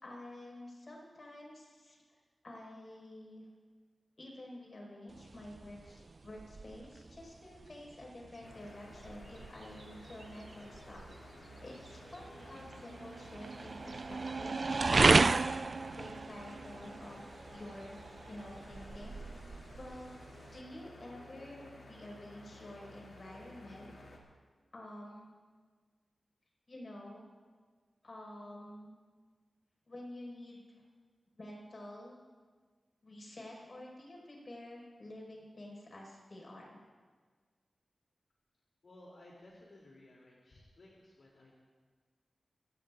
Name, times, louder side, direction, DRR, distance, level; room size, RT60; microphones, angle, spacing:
voice 1, 0.0-2.0 2.4-3.5 4.2-11.0 11.4-17.2 17.5-18.0 18.3-19.2 19.8-20.1 20.5-23.9 24.7-25.3 26.7-27.3 28.0-28.9 29.9-30.8 31.4-32.2 33.0-36.8, left 1 dB, 45° left, -2 dB, 5.1 m, -49 dB
sound 1, 5.1-20.6, right 3 dB, 50° right, 0.3 m, -34 dB
sound 2, 8.4-24.2, left 1 dB, 85° left, 2.5 m, -54 dB
voice 2, 38.8-41.6, left 1 dB, 70° left, -4 dB, 2.9 m, -57 dB
27.5 x 16.0 x 2.5 m, 1.5 s
wide cardioid pair, 100°, 0 cm